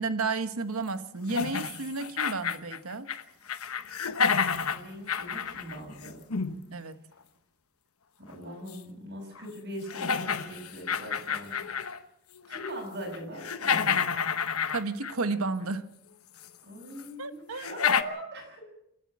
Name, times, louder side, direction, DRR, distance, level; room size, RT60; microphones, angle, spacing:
voice 1, 0.0-3.1 6.7-7.0 14.7-15.9 17.2-17.7, right 3 dB, 80° right, 11 dB, 1.3 m, -32 dB
sound 1, 1.3-3.2 3.5-6.6 8.7-8.8 9.4-9.5 9.9-12.0 12.4-12.8 13.1-15.3 16.4-16.5 17.0-17.1 17.6-18.0, left 6 dB, 90° left, 1.1 m, -29 dB
voice 2, 4.6-6.2 8.3-12.0 12.5-14.0 16.6-18.6, equal, 55° right, -2 dB, 6.3 m, -41 dB
29.0 x 10.5 x 8.6 m, 0.80 s
head